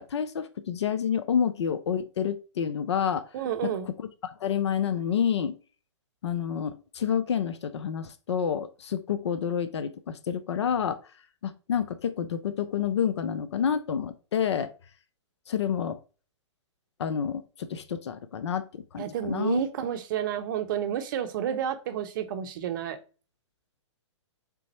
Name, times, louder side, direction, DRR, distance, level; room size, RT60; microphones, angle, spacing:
voice 1, 0.0-3.2 3.6-4.1 4.4-5.5 6.2-11.0 11.4-14.7 15.5-16.0 17.0-19.6, left 8 dB, 65° left, 11 dB, 0.4 m, -29 dB
voice 2, 3.3-3.9 19.0-23.0, right 9 dB, 45° right, 9 dB, 0.7 m, -30 dB
3.8 x 3.4 x 3.0 m, 0.36 s
figure-of-eight pair, 120°, 16 cm